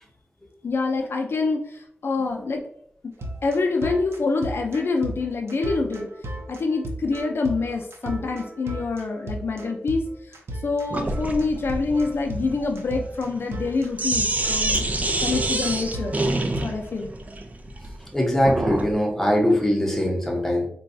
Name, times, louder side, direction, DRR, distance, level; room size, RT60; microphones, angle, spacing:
voice 1, 0.6-2.6 3.0-3.1 3.4-6.1 6.5-10.0 10.6-14.8 15.2-16.2 16.6-17.1, left 3 dB, 65° left, 2 dB, 0.4 m, -26 dB
sound 1, 3.2-16.6, right 1 dB, 80° right, 0.6 m, -35 dB
Sink (filling or washing), 10.9-18.9, right 2 dB, 35° right, 0.5 m, -27 dB
voice 2, 18.1-20.7, equal, 10° left, 0 dB, 0.9 m, -21 dB
3.9 x 2.3 x 2.6 m, 0.69 s
cardioid pair, 70°, 4 cm